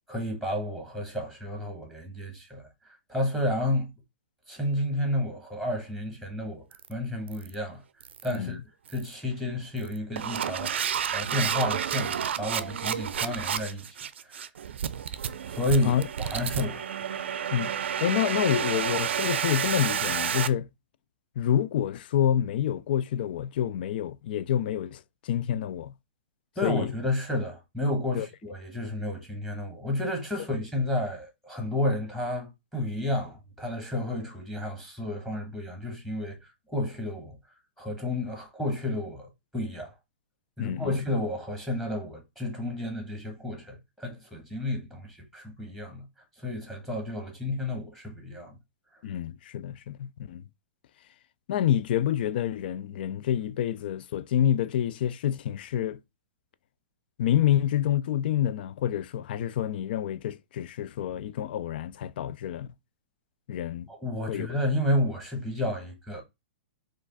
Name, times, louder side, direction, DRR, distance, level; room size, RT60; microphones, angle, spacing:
voice 1, 0.1-3.9 4.5-7.8 8.2-8.6 8.9-14.0 14.2-14.4 15.5-16.9 26.6-36.4 36.7-37.4 37.8-39.9 40.6-46.0 46.4-48.6 63.9-66.2, left 1 dB, 5° left, 1.1 m, -31 dB
sound 1, 6.7-6.9 7.3-7.5 8.0-8.4 8.9-9.1 9.8-20.5, right 8 dB, 80° right, 0.5 m, -30 dB
voice 2, 17.5-20.7 21.4-25.9 26.6-26.9 28.1-28.3 40.6-41.0 49.0-50.4 51.5-56.0 57.2-62.7 63.5-63.9 64.3-64.5, left 10 dB, 55° left, 0.4 m, -28 dB
4.8 x 2.4 x 3.9 m
hypercardioid pair, 145°, 6 cm